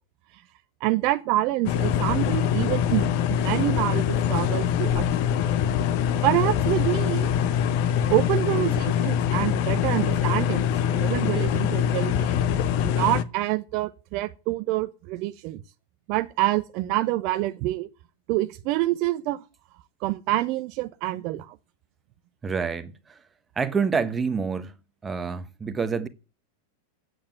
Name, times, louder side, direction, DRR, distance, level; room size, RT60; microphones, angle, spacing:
voice 1, 0.8-5.3 6.2-7.3 8.1-12.4 12.8-15.6 16.1-17.9 18.3-19.4 20.0-21.6, right 17 dB, 45° right, 0.7 m, -27 dB
sound 1, 1.6-13.2, left 9 dB, 45° left, 0.9 m, -24 dB
voice 2, 22.4-23.2 23.6-24.7 25.0-26.1, right 5 dB, 15° right, 1.1 m, -27 dB
8.6 x 7.8 x 9.0 m
figure-of-eight pair, 90°, 0 cm